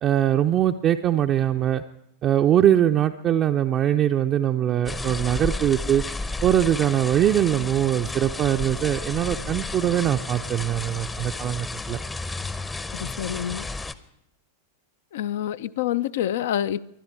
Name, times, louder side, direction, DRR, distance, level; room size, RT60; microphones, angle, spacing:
voice 1, 0.0-1.8 2.2-6.0 6.4-12.0, right 11 dB, 30° right, 0.5 m, -22 dB
sound 1, 4.9-13.9, left 3 dB, 10° left, 0.7 m, -32 dB
voice 2, 12.9-13.6 15.1-16.8, left 11 dB, 55° left, 0.4 m, -27 dB
20.5 x 12.0 x 4.6 m
figure-of-eight pair, 90°, 0 cm